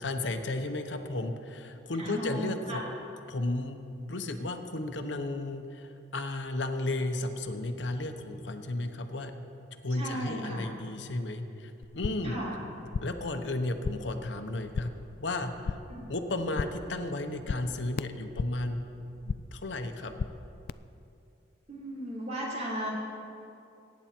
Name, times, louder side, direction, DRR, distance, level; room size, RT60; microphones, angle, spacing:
voice 1, 0.0-2.8 3.3-3.8 4.1-9.3 9.8-12.4 13.0-14.9 15.2-15.8 16.1-18.8 19.5-20.1, left 2 dB, 75° left, 6 dB, 1.0 m, -33 dB
voice 2, 2.0-2.8 10.0-10.7 12.2-12.5 15.9-16.0 21.7-22.9, right 1 dB, 35° right, -5 dB, 3.6 m, -36 dB
sound 1, 11.8-12.4 12.6-13.3 13.6-14.2 14.5-15.1 15.4-16.0 16.3-16.9 17.2-18.7 19.0-19.6 19.9-20.7, left 5 dB, 50° left, 0.3 m, -37 dB
22.5 x 9.6 x 4.5 m, 2.7 s
head